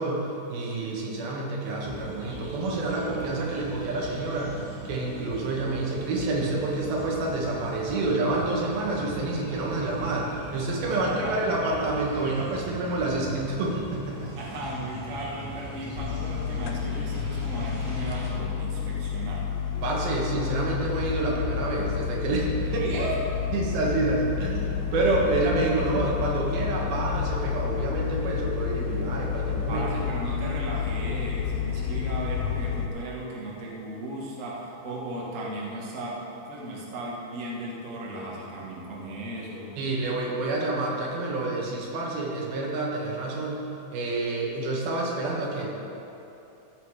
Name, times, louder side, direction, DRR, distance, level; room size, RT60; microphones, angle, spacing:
voice 1, 0.0-14.5 19.8-22.8 23.5-29.9 31.8-32.0 39.8-45.7, right 2 dB, 80° right, -2 dB, 3.4 m, -28 dB
sound 1, 1.8-18.3, right 1 dB, 30° right, 2.3 m, -40 dB
voice 2, 10.9-11.4 14.3-19.5 22.7-23.2 29.7-39.8, right 1 dB, 55° right, -4 dB, 0.8 m, -36 dB
sound 2, 16.0-32.9, left 8 dB, 85° left, 2.4 m, -30 dB
16.0 x 6.6 x 4.9 m, 2.9 s
omnidirectional pair, 4.2 m